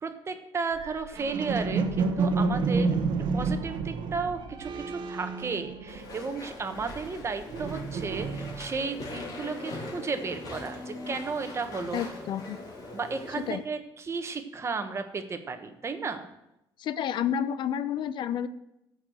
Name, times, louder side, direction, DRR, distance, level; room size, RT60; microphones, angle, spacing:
voice 1, 0.0-12.0 12.9-16.3, right 4 dB, 30° right, 8 dB, 1.2 m, -34 dB
sound 1, 0.7-6.3 6.6-8.9, right 4 dB, 65° right, 1.3 m, -30 dB
Walk footsteps / Chatter / Squeak, 5.9-13.6, left 2 dB, 45° left, 3.4 m, -41 dB
voice 2, 11.9-12.6 13.4-13.6 16.8-18.5, left 9 dB, 60° left, 14 dB, 0.6 m, -30 dB
13.5 x 4.8 x 7.8 m, 0.88 s
cardioid pair, 120°, 9 cm